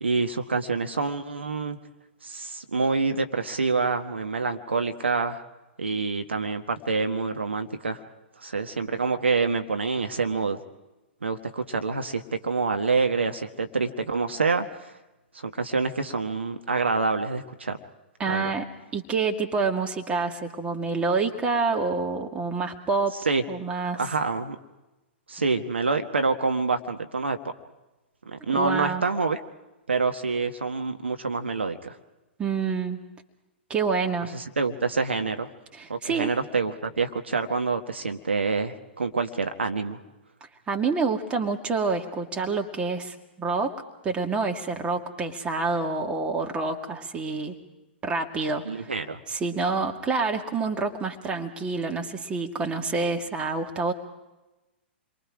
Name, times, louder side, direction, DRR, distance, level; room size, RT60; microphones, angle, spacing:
voice 1, 0.0-1.8 2.2-5.4 5.8-8.0 8.4-10.6 11.2-14.9 15.3-17.8 18.3-18.5 23.2-23.4 23.9-24.6 25.3-27.4 28.3-29.4 29.9-32.0 34.3-35.5 35.9-40.0 48.6-49.2, right 4 dB, 75° right, 7 dB, 1.3 m, -27 dB
voice 2, 18.2-18.7 18.9-23.2 23.5-24.0 28.5-29.0 32.4-33.0 33.7-34.3 35.7-36.3 40.7-43.7 44.0-47.5 48.0-48.9 49.3-53.9, right 4 dB, 15° right, 3 dB, 2.1 m, -27 dB
29.0 x 23.5 x 4.9 m, 1.0 s
figure-of-eight pair, 110°, 6 cm